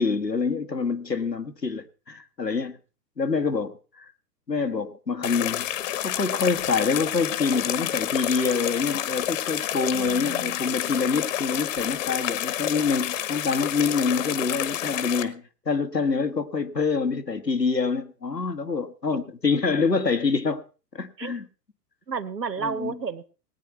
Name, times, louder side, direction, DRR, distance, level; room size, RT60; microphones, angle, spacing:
voice 1, 0.0-2.8 3.2-3.7 4.5-5.7 6.0-20.6 20.9-21.5 22.6-22.9, left 4 dB, 90° left, 7 dB, 1.4 m, -26 dB
sound 1, 5.2-15.2, left 12 dB, 50° left, 1.3 m, -29 dB
voice 2, 9.9-10.6 19.1-19.2 21.2-21.3 22.1-23.3, right 5 dB, 80° right, 15 dB, 1.1 m, -32 dB
19.5 x 9.4 x 4.4 m, 0.35 s
figure-of-eight pair, 105°, 48 cm